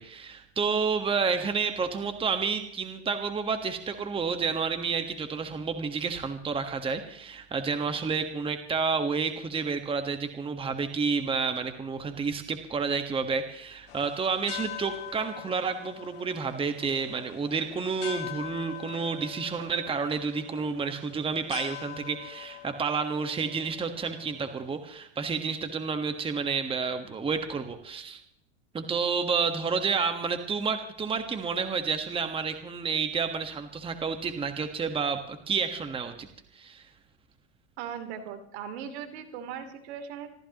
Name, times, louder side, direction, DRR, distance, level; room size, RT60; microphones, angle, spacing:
voice 1, 0.0-28.2 28.7-36.3 36.5-36.8, right 5 dB, 15° right, 7 dB, 1.4 m, -30 dB
sound 1, 13.9-24.8, left 14 dB, 65° left, 1.7 m, -43 dB
voice 2, 37.8-40.3, right 8 dB, 65° right, 6 dB, 3.1 m, -38 dB
27.0 x 14.5 x 3.0 m, 0.73 s
supercardioid pair, 125°, 35 cm